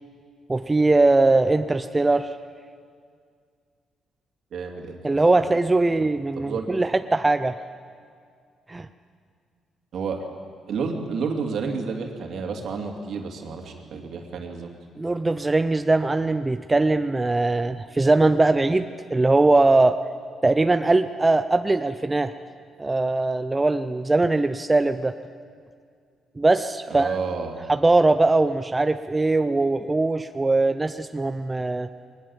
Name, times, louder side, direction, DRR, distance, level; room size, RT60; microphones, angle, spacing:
voice 1, 0.5-2.4 5.0-7.6 8.7-8.9 15.0-20.0 20.4-22.3 22.8-25.1 26.4-27.2 27.7-31.9, right 2 dB, 20° right, 9 dB, 0.6 m, -21 dB
voice 2, 4.5-5.0 5.3-5.5 5.9-6.1 6.4-6.7 9.9-10.4 10.7-14.7 26.9-27.6, right 5 dB, 65° right, 3 dB, 2.8 m, -30 dB
21.5 x 20.0 x 7.4 m, 2.1 s
cardioid pair, 90°, 0 cm